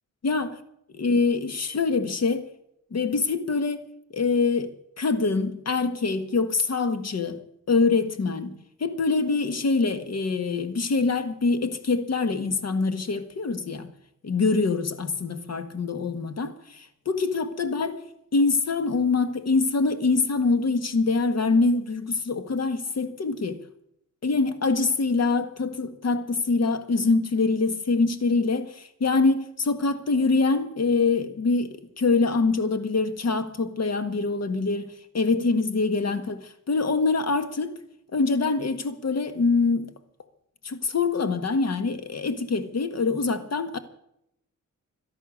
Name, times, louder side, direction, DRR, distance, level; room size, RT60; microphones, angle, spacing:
voice 1, 0.2-0.6 0.9-2.5 2.9-7.4 7.7-13.9 14.2-18.0 18.3-23.6 24.2-37.8 38.1-39.9 40.6-43.8, left 4 dB, 55° left, 1.7 m, -24 dB
12.5 x 11.5 x 8.5 m
cardioid pair, 95°, 31 cm